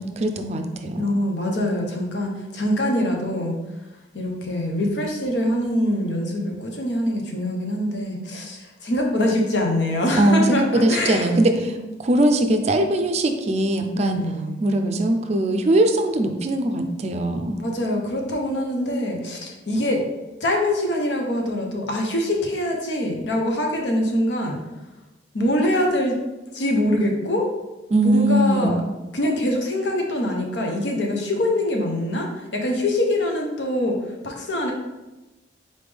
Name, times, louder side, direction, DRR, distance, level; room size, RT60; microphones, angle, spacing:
voice 1, 0.0-1.0 10.2-14.2 14.6-17.6 27.9-28.8, right 1 dB, 40° right, 5 dB, 0.4 m, -21 dB
voice 2, 1.0-3.5 4.1-11.5 13.9-14.6 17.6-20.0 20.4-24.6 25.3-26.2 26.5-27.4 28.0-28.8 29.1-34.7, left 1 dB, 80° left, 1 dB, 0.8 m, -24 dB
4.1 x 3.5 x 3.3 m, 1.1 s
head